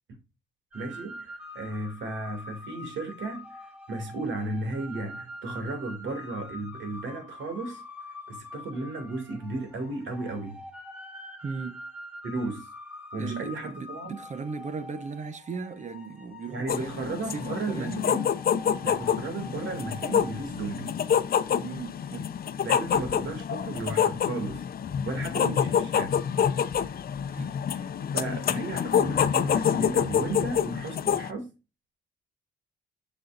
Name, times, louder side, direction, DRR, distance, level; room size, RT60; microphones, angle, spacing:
sound 1, 0.7-20.5, left 1 dB, 5° right, 2.3 m, -45 dB
voice 1, 0.7-3.6 3.9-7.8 8.3-10.6 12.2-12.7 13.1-14.2 16.5-18.3 18.8-21.0 22.6-24.6 25.0-26.1 27.8-31.5, right 2 dB, 70° right, 2.5 m, -34 dB
voice 2, 11.4-11.9 13.2-18.1 21.6-22.3 25.4-25.6 27.3-27.6, right 5 dB, 35° right, 0.8 m, -37 dB
sound 2, 16.7-31.3, left 8 dB, 50° left, 0.6 m, -27 dB
6.3 x 6.2 x 2.6 m
cardioid pair, 90°, 20 cm